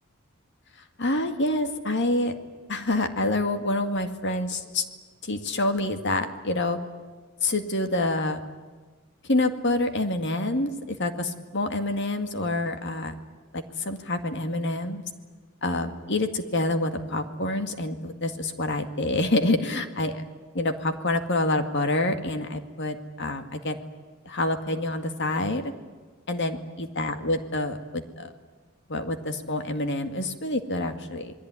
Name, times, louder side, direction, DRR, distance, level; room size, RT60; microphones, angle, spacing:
voice 1, 1.0-2.4 2.7-4.8 5.2-6.8 7.4-8.4 9.3-13.1 13.5-15.0 15.6-20.2 20.5-23.8 24.3-25.7 26.3-28.3 28.9-31.3, left 2 dB, 55° left, 7 dB, 2.1 m, -27 dB
27.5 x 21.0 x 9.7 m, 1.4 s
head